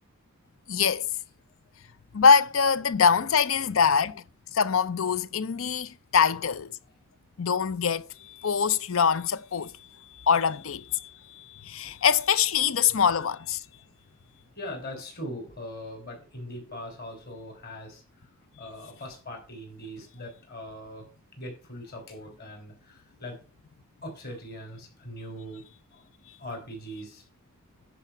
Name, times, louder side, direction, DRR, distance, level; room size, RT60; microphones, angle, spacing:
voice 1, 0.7-1.1 2.1-4.2 4.5-6.7 7.4-9.7 10.2-11.1 11.4-13.6, left 6 dB, 65° left, 0.6 m, -24 dB
voice 2, 14.6-18.3 18.6-21.1 21.4-23.4 24.0-25.6 25.9-26.0 26.4-27.2, equal, 45° left, 3.5 m, -41 dB
10.0 x 5.0 x 5.8 m
head